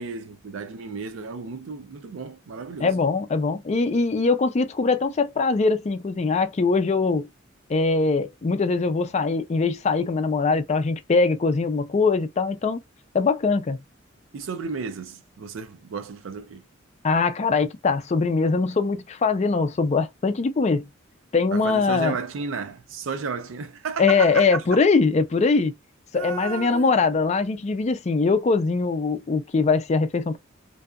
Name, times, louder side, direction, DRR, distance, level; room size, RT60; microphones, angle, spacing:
voice 1, 0.0-2.9 14.3-16.6 21.5-24.4 26.1-27.0, right 5 dB, 80° right, 0.4 m, -33 dB
voice 2, 2.8-7.3 7.7-12.8 13.1-13.8 17.0-20.9 21.3-22.2 24.0-25.7 26.1-30.4, left 4 dB, 35° left, 0.4 m, -22 dB
2.6 x 2.4 x 2.3 m
head